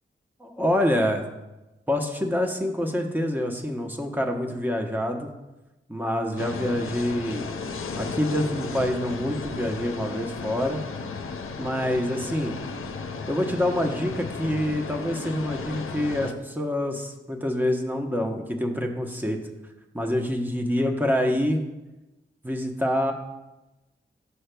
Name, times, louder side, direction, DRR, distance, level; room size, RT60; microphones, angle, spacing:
voice 1, 0.4-1.2 1.9-5.3 5.9-7.5 7.9-10.8 11.6-12.5 13.3-19.4 19.9-21.6 22.4-23.1, left 1 dB, 10° right, 3 dB, 0.9 m, -26 dB
sound 1, 6.4-16.3, left 4 dB, 85° left, 0.5 m, -34 dB
12.5 x 6.4 x 2.2 m, 1.0 s
wide cardioid pair, 85°, 21 cm